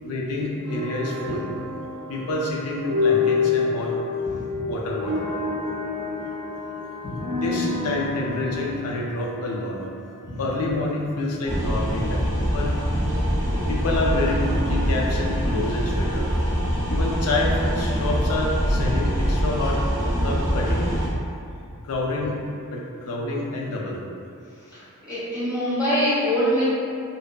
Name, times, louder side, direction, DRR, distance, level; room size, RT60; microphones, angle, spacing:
voice 1, 0.0-1.5 2.1-3.9 4.7-5.3 7.4-9.8 10.4-12.8 13.7-16.3 16.9-19.8 20.2-20.9 21.8-22.4 22.7-24.0, left 2 dB, 70° left, -2 dB, 0.4 m, -28 dB
sound 1, 0.7-10.7, left 4 dB, 80° right, 0.5 m, -28 dB
sound 2, 11.5-21.1, equal, 15° right, 0.6 m, -24 dB
voice 2, 25.1-26.6, equal, 15° left, -13 dB, 1.1 m, -24 dB
2.7 x 2.2 x 2.2 m, 2.5 s
head